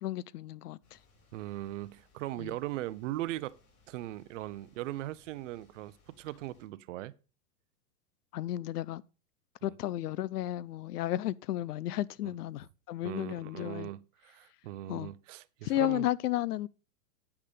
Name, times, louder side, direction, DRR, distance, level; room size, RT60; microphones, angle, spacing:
voice 1, 0.0-1.0 2.4-2.6 8.3-9.0 9.6-13.9 14.9-15.1 15.6-16.7, left 13 dB, 80° left, 0.6 m, -33 dB
sound 1, 0.8-6.7, left 3 dB, 35° left, 5.0 m, -66 dB
voice 2, 1.3-3.6 3.9-7.1 9.6-9.7 12.2-12.3 13.0-16.1, right 15 dB, 55° right, 0.7 m, -39 dB
8.8 x 5.9 x 5.0 m
hypercardioid pair, 135°, 46 cm